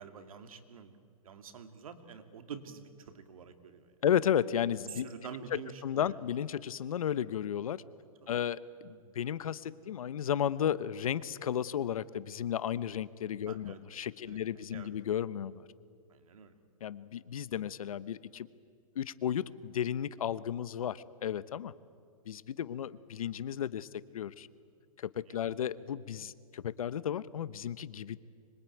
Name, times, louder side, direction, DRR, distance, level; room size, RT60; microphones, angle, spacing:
voice 1, 0.0-3.9 4.9-6.2 8.2-8.4 13.5-13.8 14.2-14.9 16.1-16.6 25.3-25.4, right 6 dB, 70° right, 7 dB, 2.4 m, -48 dB
voice 2, 4.0-5.1 5.8-7.8 8.3-15.6 16.8-18.5 18.9-21.7 22.3-23.9 24.1-24.5 25.0-28.2, left 9 dB, 70° left, 16 dB, 1.0 m, -33 dB
25.0 x 22.0 x 9.3 m, 2.2 s
hypercardioid pair, 170°, 19 cm